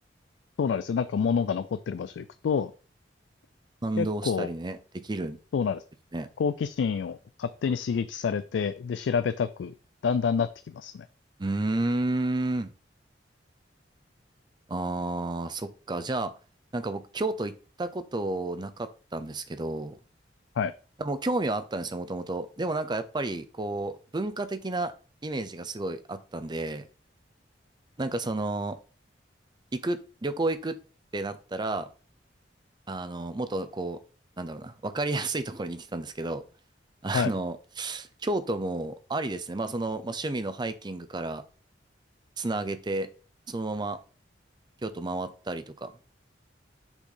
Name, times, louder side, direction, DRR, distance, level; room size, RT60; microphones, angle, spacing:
voice 1, 0.6-2.7 4.0-4.5 5.5-5.8 6.4-9.7 10.0-11.0 20.6-20.7 37.1-37.3, left 6 dB, 75° left, 12 dB, 0.3 m, -28 dB
voice 2, 3.8-5.4 6.1-6.3 11.4-12.7 14.7-16.3 16.7-20.0 21.0-24.9 25.2-26.9 28.0-28.8 29.7-30.8 31.1-31.9 32.9-34.0 34.4-36.4 37.0-41.4 42.4-43.1 43.5-44.0 44.8-45.9, right 2 dB, 25° right, 10 dB, 0.5 m, -31 dB
5.9 x 4.1 x 3.8 m, 0.37 s
head